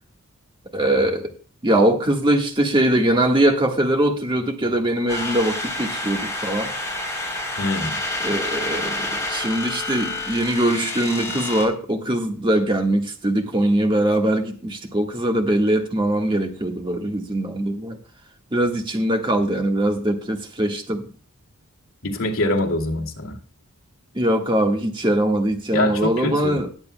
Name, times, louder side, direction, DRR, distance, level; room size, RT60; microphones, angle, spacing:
voice 1, 0.7-1.3 1.6-6.7 8.2-18.0 18.5-21.1 24.1-26.7, right 1 dB, 20° right, 1.5 m, -21 dB
sound 1, 5.1-11.6, left 2 dB, 15° left, 3.7 m, -28 dB
voice 2, 7.6-7.9 22.0-23.4 25.7-26.6, left 2 dB, 65° left, 2.5 m, -24 dB
20.5 x 8.1 x 2.2 m
head